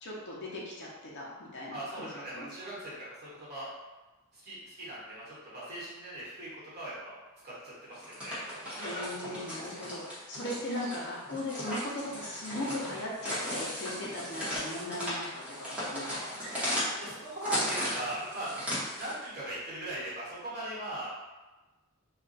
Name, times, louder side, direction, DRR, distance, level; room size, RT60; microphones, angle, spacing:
voice 1, 0.0-2.5 8.8-16.3, left 1 dB, 55° left, -4 dB, 0.7 m, -38 dB
voice 2, 1.7-3.7 4.3-7.2 7.4-9.0 14.5-14.6 17.0-18.5 19.0-21.1, right 1 dB, 45° right, -8 dB, 1.2 m, -40 dB
sound 1, 7.9-19.3, equal, 5° right, 0.9 m, -36 dB
2.4 x 2.2 x 3.9 m, 1.2 s
head